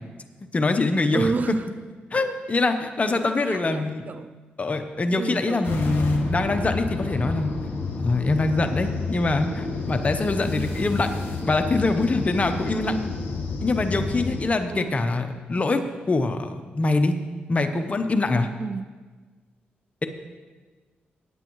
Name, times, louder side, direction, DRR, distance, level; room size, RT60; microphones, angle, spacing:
voice 1, 0.4-1.3 2.1-4.0 4.6-7.5 8.0-11.1 11.5-12.9 13.6-17.2 17.5-18.5, left 3 dB, 35° left, 7 dB, 0.9 m, -24 dB
voice 2, 1.1-1.7 3.1-4.3 5.2-6.1 10.5-11.0 12.8-13.1 14.6-15.0 18.6-18.9, right 4 dB, 45° right, 12 dB, 0.4 m, -31 dB
sound 1, 5.6-14.4, left 3 dB, 75° left, 2.0 m, -30 dB
16.5 x 8.8 x 3.1 m, 1.4 s
cardioid pair, 65°, 4 cm